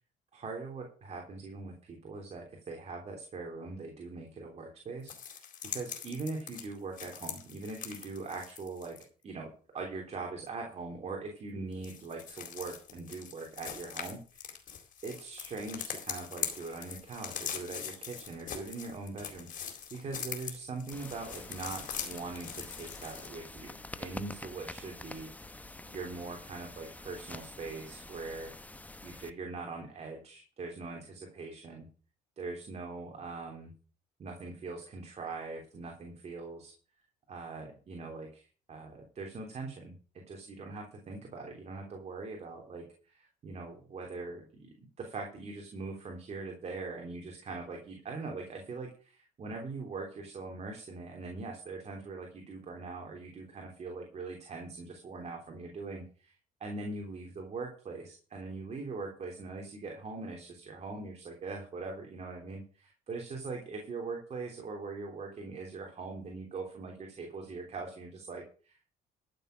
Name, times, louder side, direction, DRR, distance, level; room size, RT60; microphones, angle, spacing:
voice 1, 0.3-5.4 5.7-8.9 9.2-14.5 15.0-25.3 25.8-28.5 29.0-31.9 32.4-33.7 34.2-36.7 37.3-39.9 40.3-56.3 56.6-68.8, right 3 dB, 40° right, 2 dB, 3.2 m, -42 dB
sound 1, 5.1-9.0 11.7-23.3, left 8 dB, 50° left, 4.2 m, -42 dB
sound 2, 20.9-29.3, left 2 dB, 10° left, 0.8 m, -47 dB
13.5 x 6.8 x 6.5 m, 0.39 s
cardioid pair, 110°, 17 cm